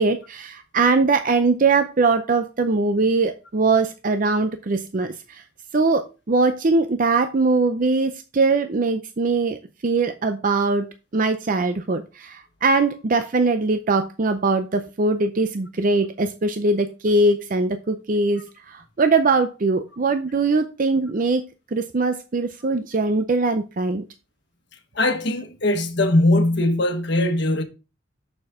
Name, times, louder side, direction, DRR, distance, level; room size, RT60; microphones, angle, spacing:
voice 1, 0.0-5.4 5.7-21.5 21.7-24.0, right 3 dB, 45° right, 0.5 m, -21 dB
voice 2, 25.0-27.6, left 1 dB, 60° left, 1.3 m, -20 dB
7.1 x 6.6 x 3.6 m
head